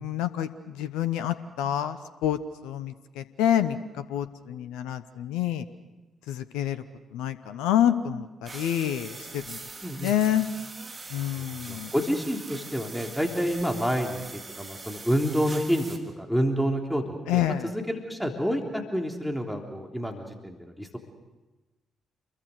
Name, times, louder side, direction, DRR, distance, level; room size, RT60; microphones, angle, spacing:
voice 1, 0.0-2.4 2.6-5.6 6.3-6.8 7.1-9.6 10.0-10.5 11.1-11.9 17.3-17.7, left 11 dB, 70° left, 12 dB, 0.9 m, -27 dB
sound 1, 8.4-16.0, right 3 dB, 30° right, 3.7 m, -42 dB
voice 2, 9.8-10.1 11.2-21.0, equal, 5° left, 2 dB, 3.4 m, -29 dB
28.5 x 22.0 x 6.7 m, 1.1 s
figure-of-eight pair, 40°, 0 cm